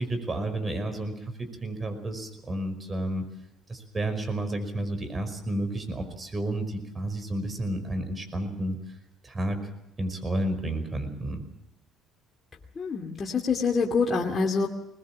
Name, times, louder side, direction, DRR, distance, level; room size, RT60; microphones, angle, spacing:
voice 1, 0.0-3.2 3.7-8.8 9.2-9.6 10.0-11.4, right 1 dB, 25° right, 8 dB, 5.3 m, -31 dB
voice 2, 12.8-14.7, left 4 dB, 35° left, 0 dB, 2.4 m, -26 dB
22.0 x 20.5 x 7.5 m, 0.88 s
supercardioid pair, 80°, 0 cm